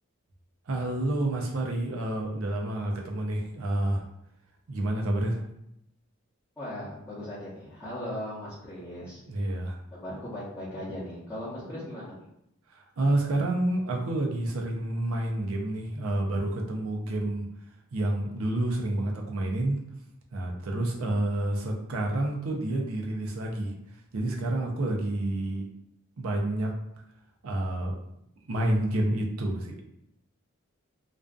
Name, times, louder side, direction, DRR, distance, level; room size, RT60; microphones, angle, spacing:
voice 1, 0.7-4.1 4.7-5.4 9.3-9.8 12.7-17.5 17.9-19.8 20.3-23.7 24.1-25.6 26.2-26.7 27.4-28.0 28.5-29.8, right 1 dB, 75° right, 1 dB, 0.5 m, -29 dB
voice 2, 6.6-9.2 9.9-12.2, left 1 dB, 10° left, -13 dB, 0.7 m, -38 dB
2.5 x 2.3 x 2.3 m, 0.77 s
head